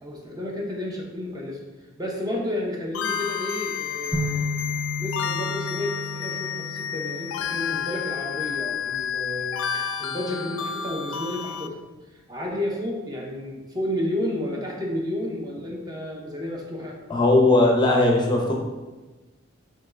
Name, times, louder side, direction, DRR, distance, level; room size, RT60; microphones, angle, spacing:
voice 1, 0.0-1.6 2.0-4.6 5.0-11.8 12.1-17.0, left 1 dB, 20° right, -1 dB, 0.6 m, -31 dB
sound 1, 2.9-11.7, left 8 dB, 70° left, 0.3 m, -30 dB
sound 2, 4.1-8.1, left 2 dB, 35° right, 1.4 m, -32 dB
voice 2, 17.1-18.5, left 2 dB, 20° left, -1 dB, 0.5 m, -18 dB
5.1 x 3.8 x 2.5 m, 1.2 s
head